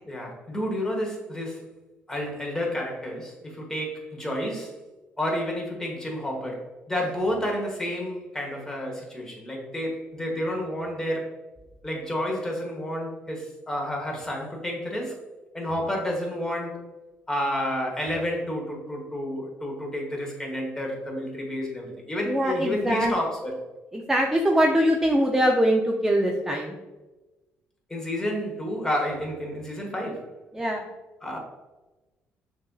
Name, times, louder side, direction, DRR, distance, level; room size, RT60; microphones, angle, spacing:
voice 1, 0.0-1.6 2.1-4.7 5.2-11.3 11.8-15.1 15.5-16.8 17.3-23.6 27.9-30.3 31.2-31.4, equal, 15° left, 0 dB, 1.2 m, -30 dB
voice 2, 22.3-23.1 23.9-26.8 30.5-30.8, equal, 10° right, 1 dB, 0.4 m, -22 dB
6.3 x 2.6 x 2.3 m, 1.1 s
cardioid pair, 100°, 4 cm